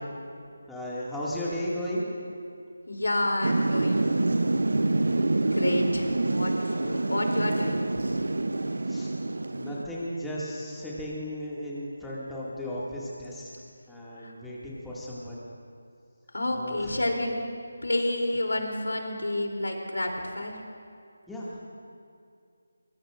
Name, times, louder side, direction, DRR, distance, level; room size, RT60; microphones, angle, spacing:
voice 1, 0.3-2.4 4.5-5.5 8.8-9.1 9.5-13.5 13.9-15.4 16.5-17.0 21.3-21.6, equal, 5° left, -8 dB, 2.1 m, -36 dB
voice 2, 2.9-4.2 5.4-8.3 14.2-14.3 16.3-17.3 17.8-20.6, left 1 dB, 85° left, 1 dB, 3.1 m, -29 dB
Thunder / Rain, 3.4-9.8, right 2 dB, 80° right, 0.7 m, -26 dB
23.0 x 22.5 x 2.5 m, 2.4 s
figure-of-eight pair, 165°, 0 cm